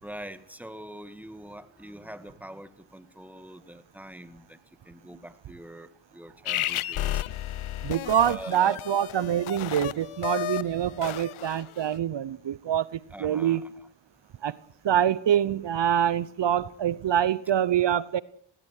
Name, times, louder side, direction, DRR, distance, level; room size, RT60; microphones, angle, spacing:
voice 1, 0.0-4.6 4.9-7.2 8.2-8.8 13.1-13.9, equal, 5° right, 2.1 m, -44 dB
sound 1, 6.5-11.9, left 13 dB, 85° left, 0.8 m, -33 dB
voice 2, 7.8-13.6 14.4-14.5 14.8-18.2, right 10 dB, 60° right, 0.8 m, -25 dB
20.0 x 18.0 x 8.2 m
cardioid pair, 60°, 48 cm